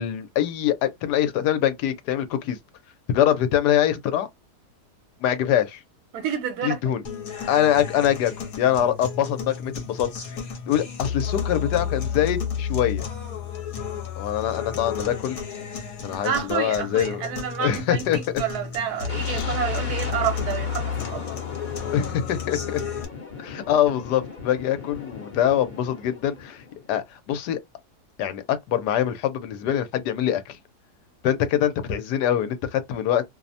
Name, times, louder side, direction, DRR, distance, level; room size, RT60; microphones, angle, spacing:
voice 1, 0.0-2.6 3.1-4.3 5.2-5.8 6.6-7.0 7.5-8.3 8.6-10.1 10.7-13.0 14.2-15.4 16.0-17.3 17.6-18.2 19.2-19.5 21.9-22.8 23.4-26.6 26.9-27.6 28.2-30.6 31.2-33.2, left 10 dB, 80° left, 1.2 m, -24 dB
voice 2, 6.1-6.8 16.2-21.3, right 8 dB, 70° right, 1.3 m, -29 dB
sound 1, 7.1-23.1, left 7 dB, 65° left, 1.2 m, -32 dB
sound 2, 19.1-27.0, left 4 dB, 35° left, 0.8 m, -37 dB
3.0 x 2.1 x 2.5 m
omnidirectional pair, 1.7 m